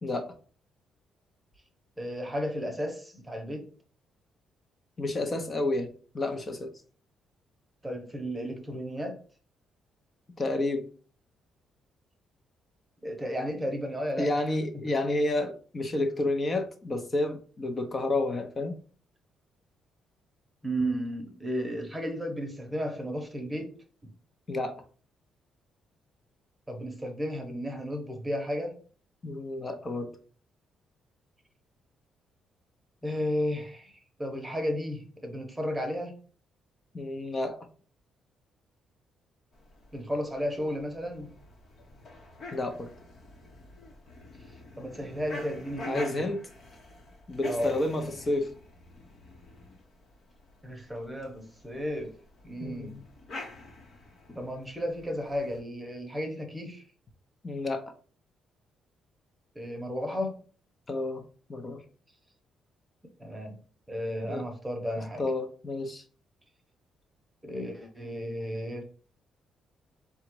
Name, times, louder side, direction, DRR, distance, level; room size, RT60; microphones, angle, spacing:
voice 1, 0.0-0.3 5.0-5.9 6.1-6.7 10.4-10.9 14.2-18.7 24.5-24.7 29.2-30.1 36.9-37.6 42.5-42.9 45.9-46.5 47.3-48.5 52.6-53.0 54.3-54.4 57.4-57.9 60.9-61.2 61.5-61.8 64.2-64.4 65.2-66.0, left 2 dB, 35° left, 6 dB, 0.9 m, -30 dB
voice 2, 2.0-3.7 7.8-9.2 13.0-14.3 14.8-15.0 20.6-23.7 24.0-24.1 26.7-28.8 33.0-36.2 39.9-41.3 44.8-46.3 47.4-47.8 50.6-52.1 52.4-53.0 54.4-56.9 59.5-60.3 63.2-63.6 63.9-65.2 67.4-68.8, equal, 15° right, 3 dB, 1.0 m, -33 dB
sound 1, 39.5-55.6, left 2 dB, 55° left, 1.1 m, -47 dB
3.9 x 2.5 x 4.6 m, 0.41 s
cardioid pair, 90°, 0 cm